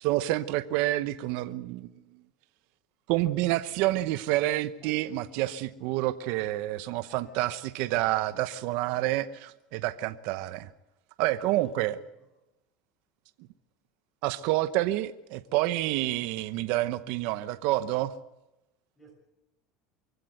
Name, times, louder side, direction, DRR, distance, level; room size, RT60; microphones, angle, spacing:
voice 1, 0.0-1.9 3.1-10.7 11.2-11.9 14.2-18.1, right 16 dB, 65° right, 12 dB, 0.9 m, -28 dB
voice 2, 4.8-5.1 7.1-7.5 11.4-12.2 18.9-19.1, right 1 dB, 10° left, 1 dB, 6.7 m, -55 dB
24.5 x 16.0 x 7.9 m, 0.95 s
supercardioid pair, 130°, 2 cm